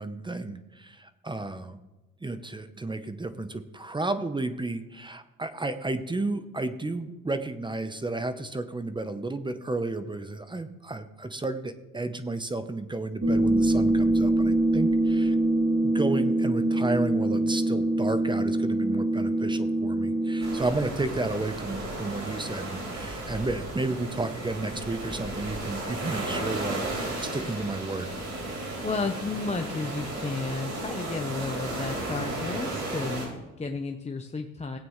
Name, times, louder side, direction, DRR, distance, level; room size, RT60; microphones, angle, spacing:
voice 1, 0.0-1.8 2.2-15.3 15.8-28.1, right 2 dB, 15° right, 11 dB, 0.8 m, -32 dB
sound 1, 13.2-20.6, right 1 dB, 45° right, 2.1 m, -24 dB
sound 2, 20.4-33.2, right 2 dB, 65° right, 4.4 m, -34 dB
voice 2, 28.8-34.8, left 4 dB, 20° left, 4 dB, 0.8 m, -32 dB
16.5 x 8.6 x 3.2 m, 1.1 s
cardioid pair, 90°, 30 cm